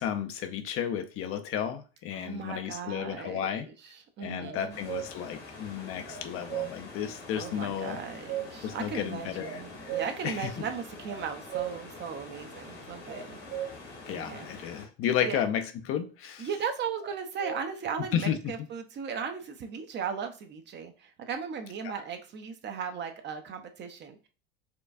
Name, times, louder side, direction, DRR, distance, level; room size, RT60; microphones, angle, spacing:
voice 1, 0.0-3.7 4.2-8.0 8.6-9.9 10.2-10.5 14.1-16.5 18.1-18.5, left 9 dB, 40° left, 0.5 m, -32 dB
voice 2, 2.1-4.8 7.4-13.4 14.1-14.7 15.2-15.4 16.4-24.3, right 6 dB, 35° right, 0.6 m, -37 dB
sound 1, 4.4-5.1 6.0-6.7 7.8-8.6 9.4-10.1 11.1-11.8 13.1-13.7 17.0-17.6, right 11 dB, 65° right, 1.8 m, -36 dB
sound 2, 4.7-14.9, left 3 dB, 85° left, 1.8 m, -46 dB
4.3 x 2.3 x 2.5 m
hypercardioid pair, 90°, 34 cm